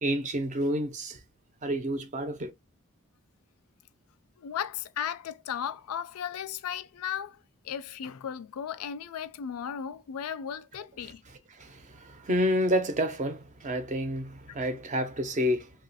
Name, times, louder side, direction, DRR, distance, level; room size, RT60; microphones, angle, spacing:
voice 1, 0.0-1.2 1.6-2.5 11.0-11.1 11.5-15.7, equal, 30° right, 0.5 m, -29 dB
voice 2, 4.4-7.4 7.6-11.2, left 8 dB, 75° left, 0.3 m, -35 dB
2.9 x 2.3 x 2.6 m
head